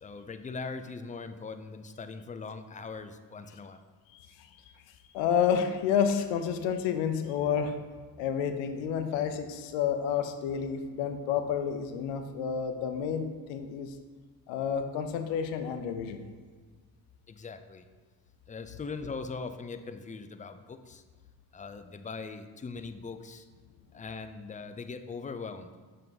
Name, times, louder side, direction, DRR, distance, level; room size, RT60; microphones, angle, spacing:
voice 1, 0.0-3.8 17.3-17.8 18.5-21.0 21.5-23.5 23.9-25.7, left 4 dB, 20° left, 9 dB, 0.4 m, -40 dB
voice 2, 5.1-7.8 8.2-13.9 14.5-16.3, left 7 dB, 90° left, 8 dB, 0.6 m, -30 dB
6.5 x 3.7 x 4.0 m, 1.5 s
supercardioid pair, 50°, 44 cm